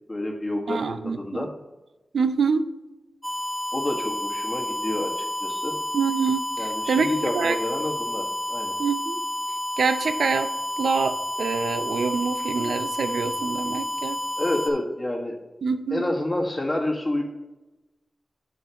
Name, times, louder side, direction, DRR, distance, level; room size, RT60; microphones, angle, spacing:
voice 1, 0.1-1.5 3.7-5.7 6.6-8.8 14.4-15.3 15.9-17.2, left 1 dB, 25° left, 1 dB, 1.7 m, -28 dB
voice 2, 0.7-1.5 2.1-2.6 5.9-7.1 7.3-7.6 8.8-9.2 9.8-14.2 15.6-16.1, right 5 dB, 80° right, 9 dB, 0.5 m, -26 dB
sound 1, 3.2-14.7, equal, 5° right, 1.9 m, -30 dB
9.1 x 7.8 x 3.0 m, 1.1 s
wide cardioid pair, 120°, 0 cm